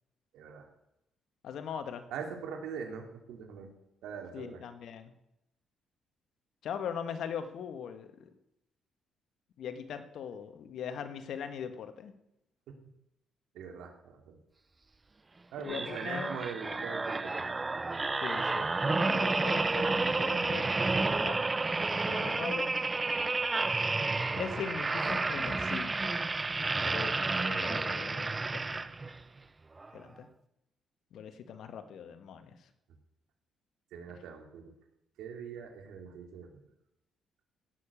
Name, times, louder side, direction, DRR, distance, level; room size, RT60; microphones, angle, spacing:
voice 1, 0.3-0.7 2.1-3.7 4.0-4.6 12.7-12.8 13.5-14.4 15.5-17.4 24.0-24.4 24.7-24.8 26.4-26.8 33.9-34.7 35.2-36.6, right 6 dB, 85° right, 3 dB, 3.0 m, -42 dB
voice 2, 1.4-2.0 4.3-5.1 6.6-8.1 9.6-12.1 15.6-16.4 18.2-20.7 21.2-21.4 22.0-22.7 24.4-26.0 26.9-28.9 29.9-30.3 31.1-32.6, left 7 dB, 70° left, 8 dB, 1.7 m, -40 dB
sound 1, 15.6-29.2 29.8-30.0, right 3 dB, 25° right, 0.8 m, -31 dB
16.5 x 7.1 x 8.4 m, 0.86 s
cardioid pair, 90°, 0 cm